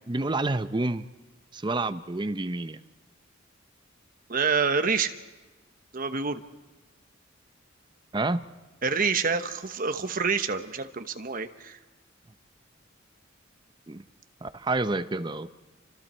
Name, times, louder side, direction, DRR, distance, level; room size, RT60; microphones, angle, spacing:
voice 1, 0.1-1.1 1.5-2.8 8.1-8.4 13.9-14.1 14.4-15.5, right 2 dB, 25° right, 12 dB, 0.6 m, -28 dB
voice 2, 4.3-5.1 5.9-6.4 8.8-11.8, right 5 dB, 45° right, 8 dB, 1.1 m, -27 dB
29.0 x 25.0 x 4.4 m, 1.2 s
head